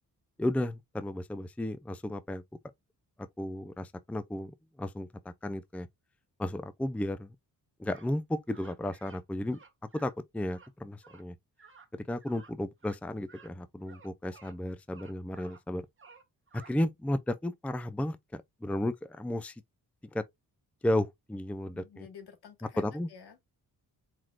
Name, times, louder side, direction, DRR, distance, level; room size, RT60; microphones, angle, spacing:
voice 1, 0.4-2.4 3.2-5.9 6.4-7.3 7.8-9.6 9.9-11.3 11.9-15.9 16.5-19.6 20.1-20.3 20.8-22.1 22.8-23.1, left 1 dB, 5° left, 0.5 m, -34 dB
sound 1, 7.9-8.1 8.5-9.2 9.5-10.1 10.5-10.7 11.0-11.2 11.6-11.9 12.2-12.5 12.8-13.0 13.3-13.5 13.8-14.6 14.9-15.6 16.0-16.7, right 5 dB, 30° right, 1.7 m, -55 dB
voice 2, 21.7-23.5, left 7 dB, 70° left, 1.7 m, -50 dB
4.7 x 3.9 x 2.4 m
cardioid pair, 60°, 41 cm